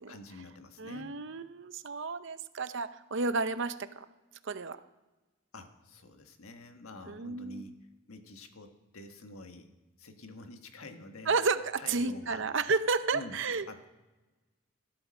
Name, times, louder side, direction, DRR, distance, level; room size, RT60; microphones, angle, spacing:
voice 1, 0.1-1.1 5.5-7.7 8.1-9.7 10.0-11.3 11.8-12.4 13.1-13.4 13.7-13.9, left 2 dB, 90° left, 6 dB, 1.5 m, -48 dB
voice 2, 0.8-4.1 4.4-4.8 7.1-7.6 11.3-13.9, right 4 dB, 60° right, 12 dB, 0.7 m, -32 dB
15.0 x 12.5 x 6.4 m, 1.2 s
head